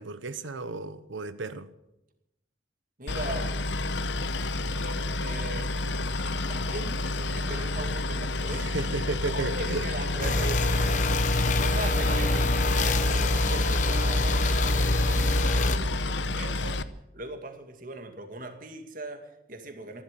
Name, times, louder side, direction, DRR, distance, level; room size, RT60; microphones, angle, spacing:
voice 1, 0.0-1.7 8.5-9.9 10.3-10.4, right 3 dB, 90° right, 1.0 m, -33 dB
voice 2, 3.0-3.6 4.8-5.7 6.2-8.7 9.3-16.8 17.1-20.0, right 2 dB, 45° right, 2.2 m, -40 dB
Boat Water vehicle, 3.1-16.8, left 2 dB, 70° left, 0.9 m, -30 dB
sound 1, 10.2-15.8, left 2 dB, 40° left, 1.0 m, -25 dB
15.0 x 12.0 x 7.5 m
head